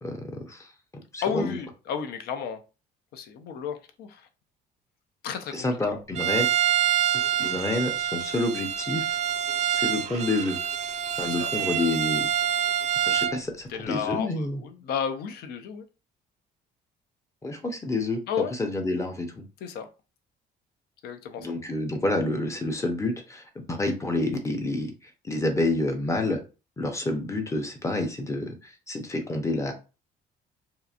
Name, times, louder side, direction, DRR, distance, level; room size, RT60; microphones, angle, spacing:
voice 1, 0.0-0.7 0.9-1.6 5.5-6.5 7.4-9.2 9.7-10.6 11.2-12.3 13.1-14.6 17.4-19.4 21.4-26.4 26.8-29.7, left 2 dB, 15° left, 4 dB, 0.6 m, -28 dB
voice 2, 1.2-2.6 3.1-4.2 5.2-5.9 11.2-11.5 13.7-15.8 18.3-18.5 19.6-19.9 21.0-21.5, left 7 dB, 70° left, 8 dB, 0.5 m, -33 dB
Bowed string instrument, 6.1-13.4, right 10 dB, 45° right, 0.4 m, -26 dB
2.8 x 2.5 x 2.4 m, 0.32 s
cardioid pair, 110°, 17 cm